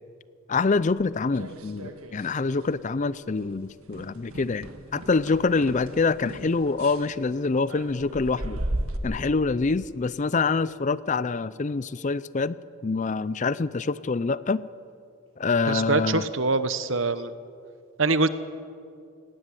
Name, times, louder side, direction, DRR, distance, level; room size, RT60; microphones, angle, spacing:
voice 1, 0.5-8.6 9.0-12.5 12.8-14.6 15.4-16.3, left 4 dB, 35° left, 17 dB, 0.4 m, -25 dB
sound 1, 0.9-2.4 2.6-3.0 3.3-3.5 3.9-9.0, right 1 dB, 80° right, 1.6 m, -36 dB
voice 2, 15.7-17.3 18.0-18.3, right 3 dB, 60° right, 13 dB, 1.0 m, -24 dB
18.5 x 17.0 x 9.7 m, 2.4 s
head